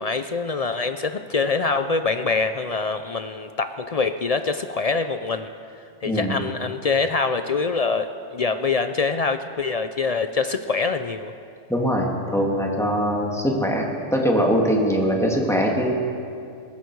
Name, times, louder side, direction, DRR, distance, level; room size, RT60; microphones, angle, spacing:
voice 1, 0.0-5.5 6.0-11.3, left 4 dB, 55° left, 9 dB, 0.4 m, -24 dB
voice 2, 6.0-6.4 11.7-15.9, equal, ahead, -1 dB, 2.0 m, -22 dB
20.0 x 15.5 x 4.7 m, 2.5 s
omnidirectional pair, 1.3 m